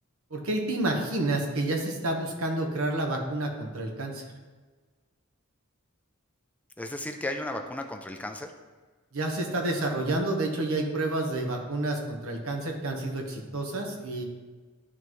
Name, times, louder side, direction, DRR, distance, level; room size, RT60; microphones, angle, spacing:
voice 1, 0.3-4.2 9.1-14.2, right 2 dB, 80° right, 1 dB, 1.2 m, -29 dB
voice 2, 6.8-8.5, left 1 dB, 5° left, 5 dB, 0.4 m, -34 dB
11.5 x 4.0 x 3.1 m, 1.4 s
head